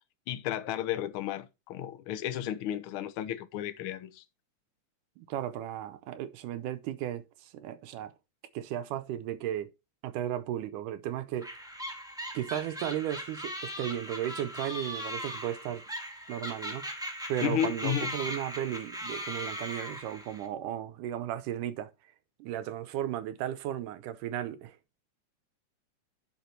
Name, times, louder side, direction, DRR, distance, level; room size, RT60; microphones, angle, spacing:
voice 1, 0.3-4.2 17.4-18.1, left 11 dB, 80° left, 1.2 m, -33 dB
voice 2, 5.2-8.1 8.5-9.7 10.0-11.5 12.3-15.8 16.3-16.9 17.3-21.9 22.4-24.8, right 11 dB, 80° right, 2.2 m, -35 dB
sound 1, 11.4-20.5, equal, ahead, 1.2 m, -39 dB
9.8 x 5.9 x 4.4 m
omnidirectional pair, 3.7 m